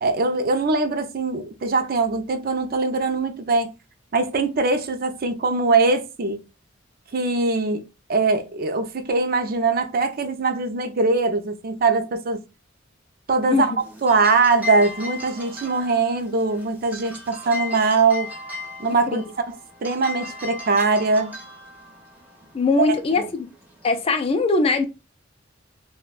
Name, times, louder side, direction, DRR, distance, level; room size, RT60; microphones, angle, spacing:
voice 1, 0.0-3.7 4.1-6.4 7.1-7.8 8.1-12.4 13.3-18.3 18.8-21.4 22.8-23.2, right 3 dB, 50° right, 0.5 m, -22 dB
sound 1, 13.8-24.2, left 3 dB, 10° right, 1.0 m, -37 dB
voice 2, 22.5-23.5 23.8-24.8, left 3 dB, 30° left, 0.4 m, -21 dB
3.7 x 2.2 x 2.4 m
head